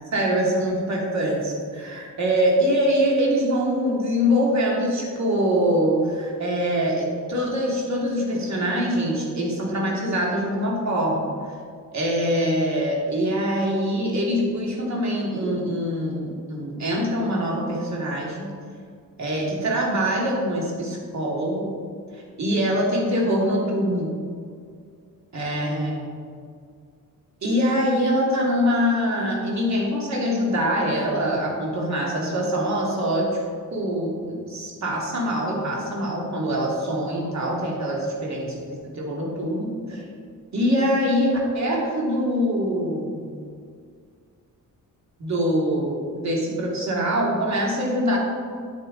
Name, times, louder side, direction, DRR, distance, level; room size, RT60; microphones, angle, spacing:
voice 1, 0.1-11.2 11.9-18.5 19.2-21.7 22.1-24.1 25.3-25.9 27.4-33.4 33.7-40.0 40.5-43.3 45.2-48.2, equal, 55° right, -2 dB, 2.5 m, -24 dB
9.0 x 8.8 x 4.0 m, 2.1 s
cardioid pair, 110°, 33 cm